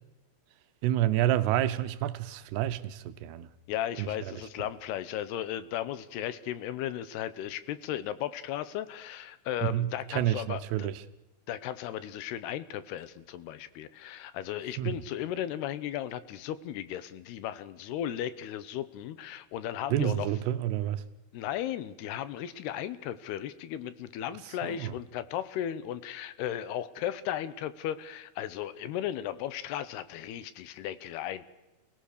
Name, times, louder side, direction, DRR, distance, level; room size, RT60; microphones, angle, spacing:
voice 1, 0.8-3.5 4.0-4.7 9.6-11.1 14.8-15.0 19.9-21.0 24.4-24.9, right 12 dB, 90° right, 3.1 m, -29 dB
voice 2, 3.7-10.9 11.5-20.3 21.3-31.4, left 11 dB, 80° left, 3.0 m, -35 dB
30.0 x 17.5 x 6.7 m
omnidirectional pair, 4.7 m